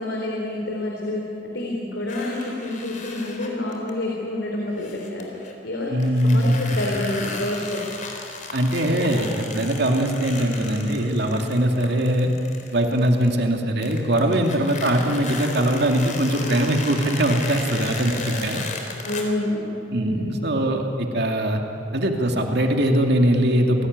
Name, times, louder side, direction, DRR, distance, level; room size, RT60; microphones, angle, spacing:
voice 1, 0.0-5.3 5.6-5.9 6.2-7.8 19.0-19.6 20.0-20.4, left 1 dB, 70° left, -1 dB, 3.9 m, -28 dB
sound 1, 2.1-3.9 4.8-5.5 6.0-13.6 13.8-19.2, left 3 dB, 45° left, 4.0 m, -35 dB
voice 2, 5.9-6.6 8.5-12.3 12.7-18.6 19.9-21.6 21.9-23.9, right 1 dB, 65° right, 3 dB, 2.5 m, -21 dB
28.5 x 19.0 x 9.5 m, 2.7 s
head